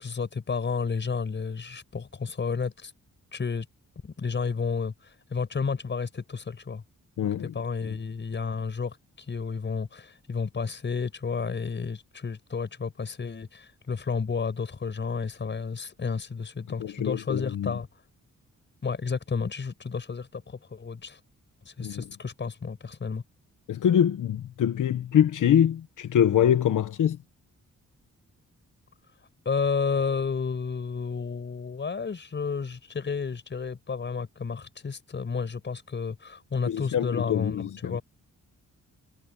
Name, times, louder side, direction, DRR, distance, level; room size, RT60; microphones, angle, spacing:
voice 1, 0.0-2.9 3.3-3.6 4.0-4.9 5.3-6.8 7.4-9.0 9.3-17.9 18.8-21.2 21.6-23.2 29.4-38.0, left 5 dB, 35° left, 5.0 m, -31 dB
voice 2, 7.2-7.5 16.8-17.7 21.8-22.0 23.7-27.2 36.7-38.0, left 9 dB, 90° left, 1.2 m, -24 dB
wide cardioid pair, 155°, 30 cm